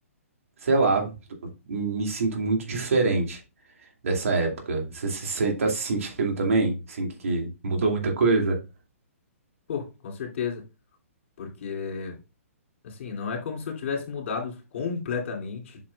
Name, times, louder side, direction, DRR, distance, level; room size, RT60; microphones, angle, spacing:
voice 1, 0.6-1.1 1.7-3.4 4.0-8.6, right 3 dB, 70° right, 1 dB, 2.6 m, -25 dB
voice 2, 9.7-10.6 11.4-12.2 12.8-15.8, left 6 dB, 55° left, 0 dB, 2.8 m, -32 dB
8.6 x 5.9 x 2.4 m, 0.29 s
hypercardioid pair, 130°, 8 cm